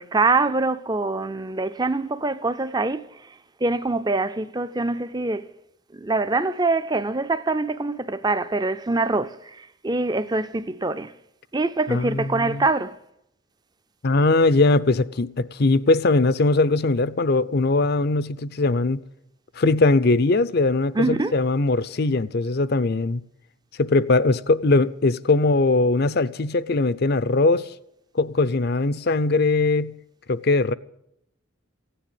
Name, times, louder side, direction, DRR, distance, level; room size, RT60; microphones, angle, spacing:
voice 1, 0.0-3.1 3.6-5.5 5.9-11.1 11.5-13.0 20.9-21.3, right 3 dB, 20° right, 0.5 m, -24 dB
voice 2, 11.9-12.6 14.0-19.0 19.6-23.2 23.8-27.7 28.1-29.9 30.3-30.7, left 3 dB, 50° left, 0.5 m, -20 dB
16.0 x 10.0 x 9.0 m
head